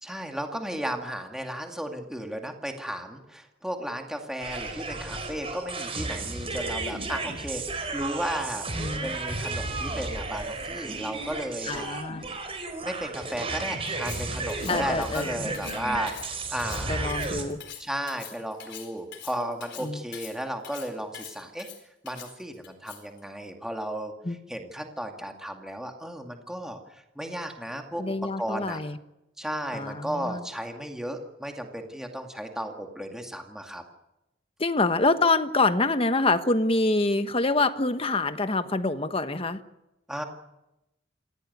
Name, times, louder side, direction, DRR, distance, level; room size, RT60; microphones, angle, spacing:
voice 1, 0.0-8.6 9.0-12.0 12.8-17.1 17.8-21.7 22.0-24.1 24.5-26.8 27.2-28.0 28.4-28.8 29.4-33.8 40.1-40.2, equal, 5° right, 3 dB, 2.2 m, -34 dB
sound 1, 4.4-17.4, right 3 dB, 30° right, 4.4 m, -33 dB
voice 2, 8.8-9.2 11.7-12.2 14.7-15.3 16.9-17.6 19.8-20.0 24.2-24.4 28.0-29.0 29.7-30.4 34.6-39.6, left 3 dB, 30° left, 10 dB, 1.3 m, -26 dB
Cutlery silverware, 13.9-23.2, left 10 dB, 65° left, 4.5 m, -44 dB
26.0 x 17.0 x 9.5 m, 0.93 s
head